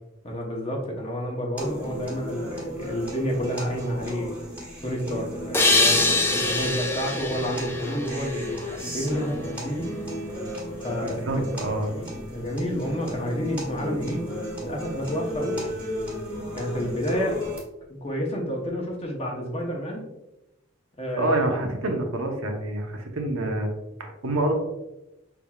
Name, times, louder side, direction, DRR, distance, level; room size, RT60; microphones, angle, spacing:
voice 1, 0.2-4.3 4.8-10.0 10.8-11.2 11.8-14.3 14.6-15.8 16.5-17.4 18.0-20.0 21.0-21.3, equal, 30° left, 0 dB, 0.9 m, -30 dB
sound 1, 1.6-17.6, equal, 10° right, 1.5 m, -34 dB
sound 2, 5.5-9.0, left 2 dB, 10° left, 0.4 m, -24 dB
voice 2, 11.0-11.9 21.2-23.7 24.0-24.5, right 1 dB, 85° right, 2 dB, 0.9 m, -27 dB
5.7 x 3.5 x 2.3 m, 0.94 s
head